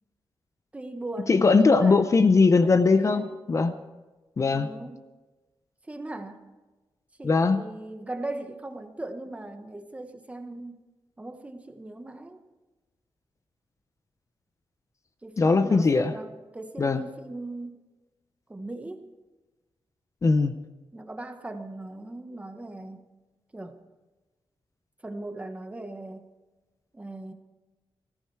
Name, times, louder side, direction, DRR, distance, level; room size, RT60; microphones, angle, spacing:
voice 1, 0.7-2.1 2.6-3.3 4.5-5.1 5.9-6.4 7.2-10.8 11.2-12.4 15.2-17.8 18.5-19.0 20.9-23.0 23.5-23.8 25.0-26.3 26.9-27.3, right 2 dB, 15° right, 7 dB, 1.1 m, -39 dB
voice 2, 1.3-3.7 4.4-4.7 7.2-7.6 15.4-16.1 16.8-17.0 20.2-20.6, left 4 dB, 35° left, 9 dB, 0.6 m, -20 dB
19.5 x 14.5 x 4.7 m, 1.2 s
wide cardioid pair, 170°, 9 cm